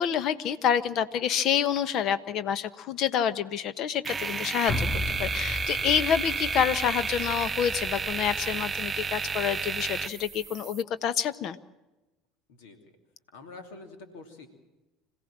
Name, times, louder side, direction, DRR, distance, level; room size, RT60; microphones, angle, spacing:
voice 1, 0.0-4.9 5.2-11.6, left 8 dB, 55° left, 14 dB, 1.2 m, -28 dB
sound 1, 4.0-10.8, right 5 dB, 25° right, 0.8 m, -32 dB
sound 2, 4.7-9.1 9.5-9.6, left 1 dB, 20° left, 3.1 m, -36 dB
voice 2, 12.5-13.0 13.3-14.5, left 3 dB, 75° left, 6 dB, 2.8 m, -46 dB
26.5 x 17.0 x 7.4 m, 1.1 s
hypercardioid pair, 70°, 0 cm